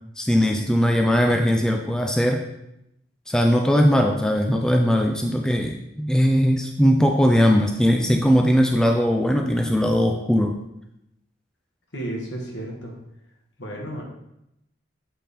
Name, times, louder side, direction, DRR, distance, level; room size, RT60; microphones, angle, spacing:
voice 1, 0.2-2.4 3.3-10.6, equal, 5° left, 2 dB, 0.3 m, -19 dB
voice 2, 11.9-13.0 13.6-14.0, right 1 dB, 75° left, -1 dB, 1.4 m, -32 dB
7.4 x 4.2 x 3.5 m, 0.83 s
head